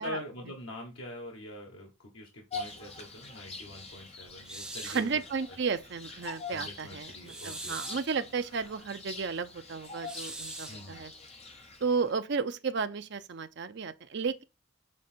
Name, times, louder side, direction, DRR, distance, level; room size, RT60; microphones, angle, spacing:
voice 1, 0.0-5.1 5.5-5.6 6.5-8.0 10.7-11.1, left 1 dB, 75° left, 1.3 m, -44 dB
Bird vocalization bird call bird song, 2.5-12.1, left 4 dB, 30° left, 0.8 m, -45 dB
sound 1, 4.4-5.1 7.3-8.1 10.0-10.8, right 2 dB, 5° right, 0.5 m, -41 dB
voice 2, 4.8-11.1 11.8-14.4, right 5 dB, 55° right, 0.5 m, -33 dB
6.4 x 3.7 x 4.3 m
head